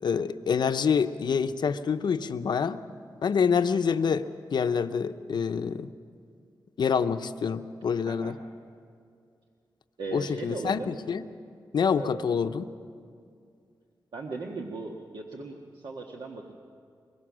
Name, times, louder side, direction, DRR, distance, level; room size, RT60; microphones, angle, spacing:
voice 1, 0.0-2.8 3.2-5.9 6.8-8.3 10.1-11.2 11.7-12.7, left 6 dB, 65° left, 10 dB, 0.8 m, -26 dB
voice 2, 8.1-8.4 10.0-10.9 12.0-12.3 14.1-16.5, right 3 dB, 75° right, 0 dB, 1.6 m, -38 dB
23.5 x 22.0 x 6.3 m, 2.3 s
wide cardioid pair, 130°, 8 cm